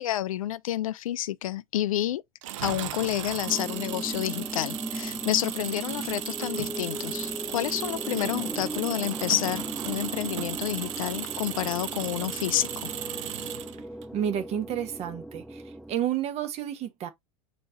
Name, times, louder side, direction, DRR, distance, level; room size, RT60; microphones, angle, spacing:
voice 1, 0.0-2.2 2.6-12.9, left 13 dB, 65° left, 0.4 m, -29 dB
Engine, 2.4-14.0, right 12 dB, 55° right, 0.6 m, -36 dB
sound 1, 3.4-15.9, right 1 dB, ahead, 0.4 m, -38 dB
voice 2, 14.1-17.1, right 10 dB, 35° right, 1.0 m, -31 dB
4.4 x 2.9 x 4.0 m
figure-of-eight pair, 90°, 19 cm